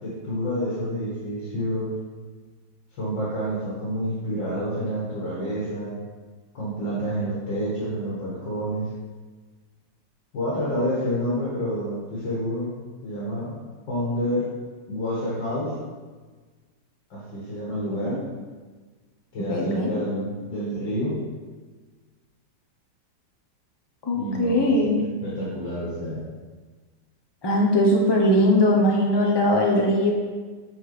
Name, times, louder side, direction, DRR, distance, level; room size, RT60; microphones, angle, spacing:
voice 1, 0.0-2.0 2.9-6.0 6.5-8.9 10.3-12.7 13.0-13.6 13.9-14.5 14.9-15.7 17.1-18.2 19.3-21.2 24.1-24.7 25.0-26.2, equal, 85° left, -8 dB, 2.4 m, -28 dB
voice 2, 19.5-19.9 24.0-25.0 27.4-30.1, left 1 dB, 30° left, -1 dB, 0.5 m, -20 dB
6.8 x 5.4 x 3.3 m, 1.4 s
omnidirectional pair, 1.9 m